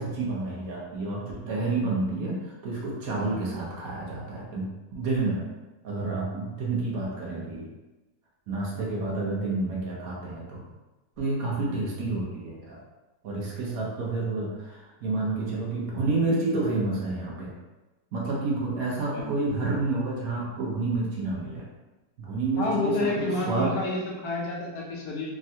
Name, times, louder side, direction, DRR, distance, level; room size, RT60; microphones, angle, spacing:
voice 1, 0.0-2.4 2.6-4.7 4.9-5.5 5.8-7.7 8.5-10.6 11.2-12.8 13.2-17.5 18.1-21.6 22.2-23.7, right 3 dB, 65° right, -4 dB, 1.1 m, -29 dB
voice 2, 22.6-25.4, left 2 dB, 70° left, -3 dB, 1.2 m, -29 dB
3.5 x 2.2 x 2.7 m, 1.1 s
omnidirectional pair, 1.7 m